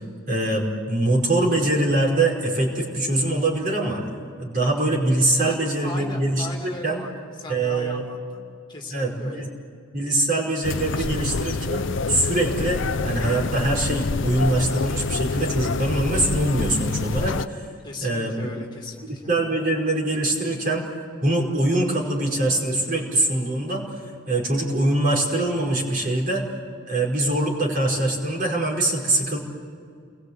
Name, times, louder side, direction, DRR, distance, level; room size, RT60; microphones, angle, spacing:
voice 1, 0.3-4.0 4.4-6.5 6.8-7.0 7.5-8.0 8.9-9.5 9.9-17.7 18.0-18.5 19.3-20.8 21.2-23.9 24.3-26.5 26.9-29.4, right 2 dB, 40° right, -1 dB, 5.1 m, -23 dB
voice 2, 5.8-7.1 7.4-8.4 8.7-9.5 11.0-11.1 17.8-19.3, left 2 dB, 20° left, 1 dB, 2.5 m, -37 dB
sound 1, 10.6-17.5, left 4 dB, 65° left, 0.6 m, -27 dB
30.0 x 22.0 x 8.2 m, 2.3 s
head